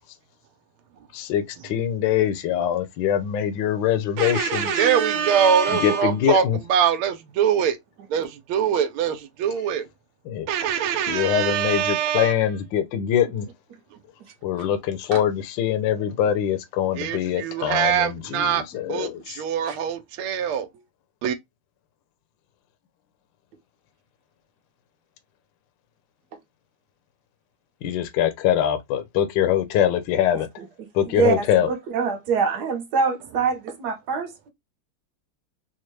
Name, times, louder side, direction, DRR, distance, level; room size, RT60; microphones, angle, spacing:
voice 1, 1.1-4.9 5.7-6.6 10.2-10.5 11.1-13.5 14.4-19.4 27.8-30.5 30.9-31.7, left 10 dB, 70° left, 1.3 m, -23 dB
voice 2, 4.2-6.0 15.1-15.2 19.6-19.8 31.2-31.3 31.7-34.5, right 5 dB, 60° right, 1.3 m, -25 dB
voice 3, 4.8-6.4 6.7-7.8 8.1-9.8 10.5-12.3 17.0-18.6 18.9-19.1 19.4-20.7 21.2-21.3, right 8 dB, 80° right, 1.6 m, -23 dB
4.3 x 2.2 x 3.1 m
omnidirectional pair, 2.3 m